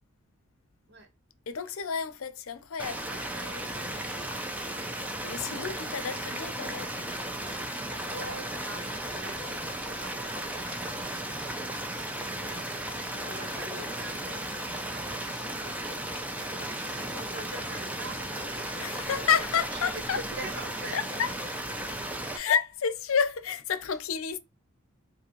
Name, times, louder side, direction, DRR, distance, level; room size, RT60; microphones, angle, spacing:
voice 1, 1.5-3.0 5.2-6.9 13.1-13.9 18.8-20.3 20.9-21.4 22.3-24.4, left 7 dB, 85° left, 0.6 m, -30 dB
sound 1, 2.8-22.4, right 1 dB, 5° right, 0.4 m, -35 dB
voice 2, 3.1-4.4 4.7-4.9 5.2-5.3 7.5-16.0 16.5-21.0, right 2 dB, 55° right, 1.0 m, -45 dB
4.9 x 2.1 x 3.0 m
head